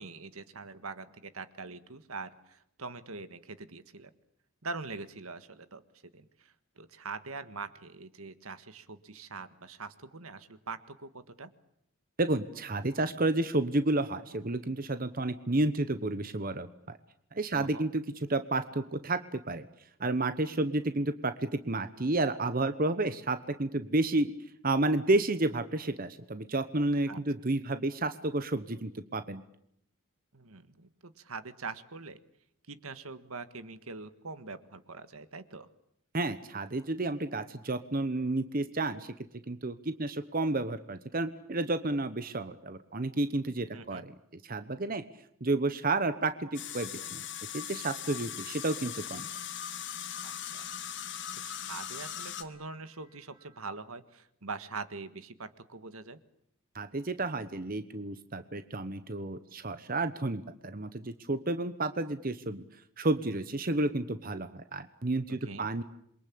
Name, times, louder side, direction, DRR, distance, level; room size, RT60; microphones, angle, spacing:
voice 1, 0.0-4.1 4.6-5.8 6.1-11.5 17.5-17.8 27.1-27.2 30.3-32.2 32.7-35.7 43.7-44.0 50.2-50.7 51.4-56.2 65.3-65.7, right 4 dB, 80° right, 12 dB, 1.6 m, -43 dB
voice 2, 12.2-16.7 17.3-19.7 20.0-24.3 24.6-29.4 36.1-39.1 39.5-44.2 44.4-45.0 45.4-47.2 47.5-49.3 56.7-62.6 63.0-65.8, right 2 dB, 40° right, 11 dB, 1.1 m, -31 dB
sound 1, 46.5-52.4, left 10 dB, 55° left, 1.9 m, -39 dB
Piano, 46.6-53.6, right 1 dB, 20° right, 4.6 m, -64 dB
28.0 x 23.0 x 8.7 m, 0.73 s
head